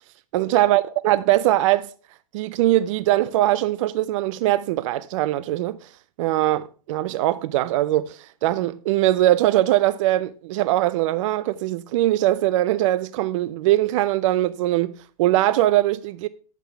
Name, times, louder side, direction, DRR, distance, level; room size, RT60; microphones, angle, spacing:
voice 1, 0.3-1.9 2.3-5.9 6.2-16.3, right 15 dB, 60° right, 0.5 m, -21 dB
9.7 x 8.2 x 3.3 m
hypercardioid pair, 110°, 19 cm